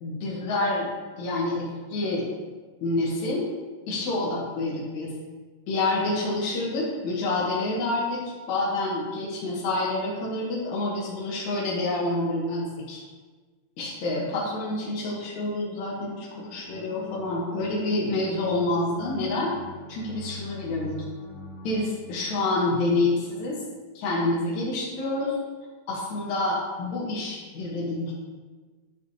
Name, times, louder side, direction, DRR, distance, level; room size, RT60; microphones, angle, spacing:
voice 1, 0.0-0.9 1.2-2.3 2.8-3.5 3.9-5.1 5.7-13.0 13.8-19.5 19.9-21.0 21.6-23.6 23.9-25.4 25.9-28.1, left 2 dB, 75° left, -6 dB, 2.7 m, -28 dB
sound 1, 16.7-21.9, left 2 dB, 40° left, 1.7 m, -42 dB
11.5 x 4.9 x 3.2 m, 1.4 s
omnidirectional pair, 3.4 m